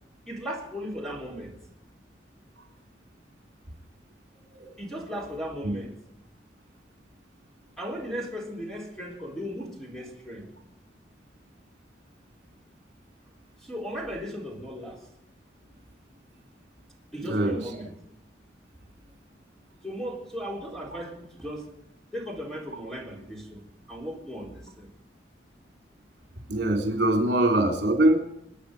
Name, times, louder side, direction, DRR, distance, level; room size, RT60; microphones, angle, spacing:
voice 1, 0.3-1.6 4.8-6.0 7.8-10.5 13.6-15.1 17.1-17.9 19.8-21.7 22.1-24.9, equal, ahead, -2 dB, 3.9 m, -36 dB
voice 2, 17.2-17.7 26.5-28.2, right 1 dB, 70° right, 2 dB, 3.7 m, -23 dB
28.0 x 9.6 x 5.0 m, 0.82 s
head